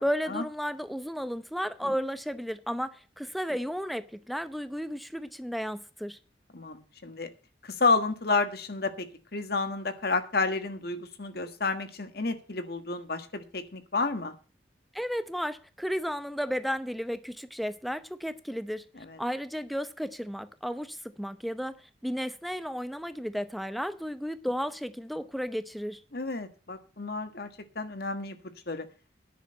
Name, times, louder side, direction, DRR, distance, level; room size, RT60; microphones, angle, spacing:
voice 1, 0.0-6.2 14.9-18.8 19.2-26.0, equal, ahead, 0.7 m, -33 dB
voice 2, 6.5-7.3 7.6-9.1 9.3-14.3 19.1-19.2 26.1-27.5 27.7-28.4 28.7-28.9, left 3 dB, 60° left, 1.5 m, -30 dB
10.0 x 6.5 x 8.6 m
head